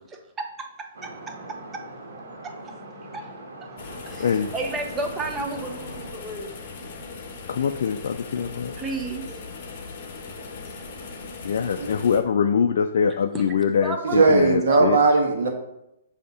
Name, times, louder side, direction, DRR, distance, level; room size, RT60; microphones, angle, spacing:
voice 1, 0.1-0.7 1.0-1.8 2.4-2.8 3.1-3.3 4.1-6.6 7.5-7.6 8.8-9.6 10.7-10.8 13.3-13.4 13.8-14.4 14.7-14.9, right 2 dB, 15° right, 3 dB, 0.6 m, -33 dB
sound 1, 0.9-6.1, right 1 dB, 90° right, 1.5 m, -41 dB
sound 2, 3.8-12.2, left 4 dB, 45° left, 1.0 m, -39 dB
voice 2, 7.5-8.7 11.4-15.0, left 7 dB, 65° left, 5 dB, 0.3 m, -23 dB
voice 3, 14.0-15.5, right 3 dB, 70° right, 3 dB, 1.3 m, -18 dB
6.9 x 2.8 x 4.8 m, 0.85 s
hypercardioid pair, 155°, 0 cm